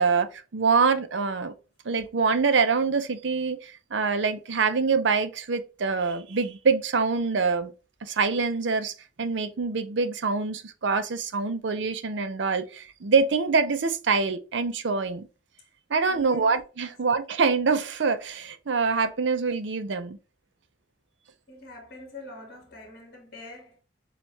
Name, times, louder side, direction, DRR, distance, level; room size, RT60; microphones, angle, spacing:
voice 1, 0.0-1.5 1.8-7.7 8.0-15.3 15.9-20.2, right 4 dB, 75° right, 0.6 m, -25 dB
voice 2, 16.1-16.5 16.9-17.0 21.5-23.8, left 2 dB, 50° left, 1.8 m, -44 dB
6.9 x 2.4 x 3.2 m
head